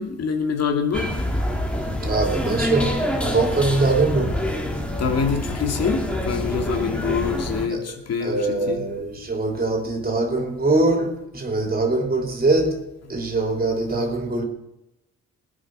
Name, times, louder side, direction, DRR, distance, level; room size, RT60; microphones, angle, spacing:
voice 1, 0.0-1.5 5.0-8.8, left 6 dB, 55° left, 4 dB, 2.5 m, -25 dB
sound 1, 0.9-7.7, left 1 dB, 5° left, 2.7 m, -26 dB
voice 2, 2.0-4.4 7.7-7.8 8.2-12.8 13.1-14.4, right 2 dB, 30° right, 2 dB, 3.8 m, -22 dB
18.5 x 9.4 x 6.5 m, 0.92 s
cardioid pair, 90°, 30 cm